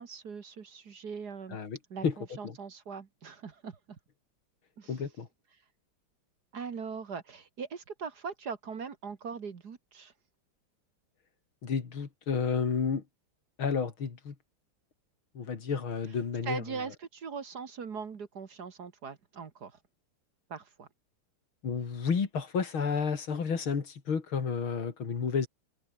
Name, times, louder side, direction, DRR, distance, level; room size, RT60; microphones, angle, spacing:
voice 1, 0.0-1.6 1.9-4.0 4.8-5.0 6.5-10.1 16.4-19.8 20.5-20.9, right 5 dB, 50° right, 2.1 m, -41 dB
voice 2, 4.9-5.3 11.6-13.0 13.6-14.4 15.4-16.6 21.6-25.5, left 6 dB, 70° left, 3.4 m, -31 dB
omnidirectional pair, 2.3 m